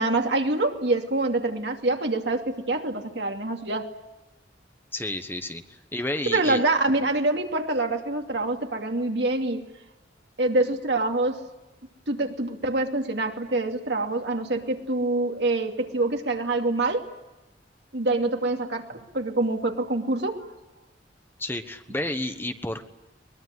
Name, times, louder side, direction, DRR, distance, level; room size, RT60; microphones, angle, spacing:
voice 1, 0.0-3.9 6.3-9.6 10.4-11.4 12.1-17.1 17.9-20.5, right 2 dB, 70° right, 3 dB, 2.7 m, -25 dB
voice 2, 4.9-5.6 5.9-6.6 21.4-22.9, left 1 dB, 10° left, 8 dB, 1.2 m, -31 dB
22.5 x 21.5 x 9.7 m, 1.0 s
head